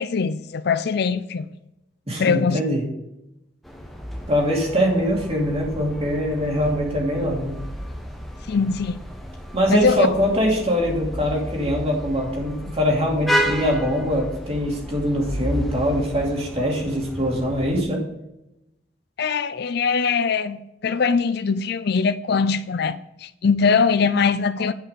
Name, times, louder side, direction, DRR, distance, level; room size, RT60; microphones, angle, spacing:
voice 1, 0.0-1.5 2.2-2.6 8.5-9.0 9.7-10.1 19.2-24.7, left 5 dB, 60° left, 0.5 m, -21 dB
voice 2, 2.1-2.8 4.3-7.6 9.5-18.0, equal, 35° right, 2.6 m, -23 dB
sound 1, 3.6-17.8, equal, ahead, 1.2 m, -32 dB
9.9 x 5.6 x 5.2 m
head